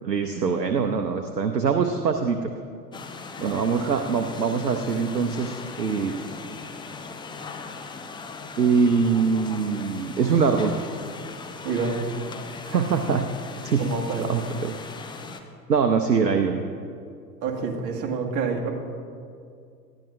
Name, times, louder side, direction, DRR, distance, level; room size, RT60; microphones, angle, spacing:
voice 1, 0.0-2.5 3.4-6.2 8.6-10.8 12.7-13.3 13.6-13.9 14.3-14.8 15.7-16.6, right 5 dB, 80° right, 6 dB, 0.8 m, -23 dB
sound 1, 2.9-15.4, left 4 dB, 10° left, 0.6 m, -39 dB
voice 2, 3.4-3.9 11.6-12.1 13.8-14.3 17.4-18.7, right 5 dB, 35° right, 0 dB, 1.8 m, -28 dB
19.0 x 13.0 x 2.5 m, 2.4 s
figure-of-eight pair, 80°, 49 cm